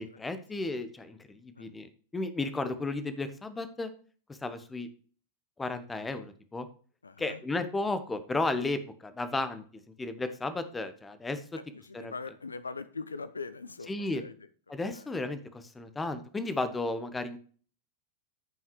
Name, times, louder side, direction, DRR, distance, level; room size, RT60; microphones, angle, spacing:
voice 1, 0.0-3.9 4.3-4.9 5.6-6.7 7.2-9.6 10.0-11.4 11.9-12.1 13.9-14.2 14.7-17.4, left 2 dB, 10° left, 11 dB, 1.0 m, -34 dB
voice 2, 7.0-7.4 11.7-14.4 14.9-15.1, left 4 dB, 75° left, 14 dB, 0.4 m, -41 dB
14.0 x 5.7 x 3.1 m, 0.44 s
figure-of-eight pair, 90°, 0 cm